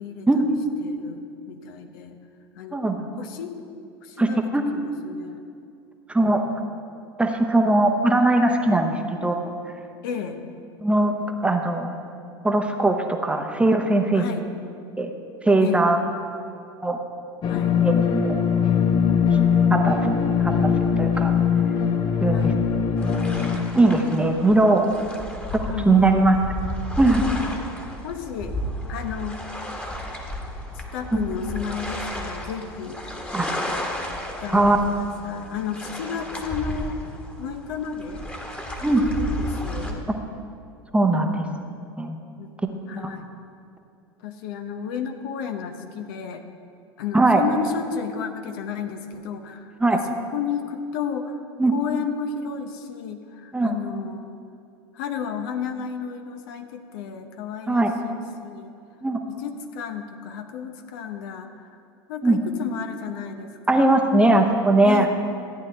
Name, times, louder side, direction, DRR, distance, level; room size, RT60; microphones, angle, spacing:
voice 1, 0.0-2.2 2.6-3.5 4.0-5.4 6.2-6.4 10.0-10.4 14.1-14.4 15.6-15.9 17.4-17.8 22.3-22.6 25.2-25.3 25.7-26.2 27.2-27.7 28.0-28.6 28.9-29.4 30.7-33.0 34.4-37.0 37.4-38.3 38.9-40.1 42.4-42.5 42.9-43.3 44.2-46.4 47.0-51.4 51.7-54.4 54.9-58.7 59.3-61.8 62.1-64.1 64.8-65.1, left 7 dB, 60° left, 6 dB, 0.8 m, -33 dB
voice 2, 4.2-4.7 6.1-6.4 7.2-9.5 10.8-11.1 11.4-11.9 12.4-14.2 15.0-15.1 15.5-16.0 16.8-17.0 17.8-18.0 18.2-18.4 19.7-21.3 22.2-22.5 23.7-24.9 25.9-26.4 27.0-27.3 33.3-33.5 34.5-34.8 38.8-39.0 40.9-41.4 42.0-42.2 42.6-43.1 47.1-47.4 49.8-50.0 51.6-51.7 53.5-53.7 57.7-57.9 59.0-59.2 62.2-62.4 63.7-65.1, right 2 dB, 10° right, 4 dB, 0.9 m, -20 dB
sound 1, 17.4-23.6, left 7 dB, 35° left, 0.8 m, -21 dB
sound 2, 23.0-39.9, left 1 dB, 10° left, 1.5 m, -33 dB
14.0 x 9.5 x 3.4 m, 2.4 s
figure-of-eight pair, 80°, 13 cm